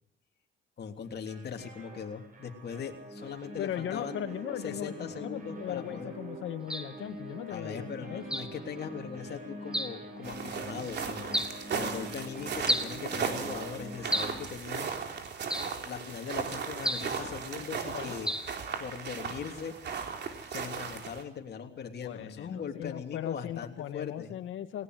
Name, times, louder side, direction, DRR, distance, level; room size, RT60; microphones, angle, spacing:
voice 1, 0.8-4.2 4.6-6.1 7.5-11.4 11.7-14.9 15.8-18.3 18.8-19.8 20.5-24.3, left 7 dB, 55° left, 3 dB, 3.2 m, -40 dB
sound 1, 1.2-14.4, right 1 dB, 45° right, 7.9 m, -44 dB
voice 2, 3.6-8.2 17.9-18.2 22.0-24.8, left 11 dB, 80° left, 9 dB, 1.9 m, -38 dB
sound 2, 6.7-6.9 8.3-8.6 9.7-10.0 11.3-11.6 12.7-13.0 14.1-14.4 15.5-15.8 16.8-17.2 18.3-18.5, equal, 5° right, 1.8 m, -31 dB
sound 3, 10.2-21.2, right 6 dB, 60° right, 3.6 m, -37 dB
19.5 x 18.0 x 7.9 m, 0.71 s
cardioid pair, 90°, 20 cm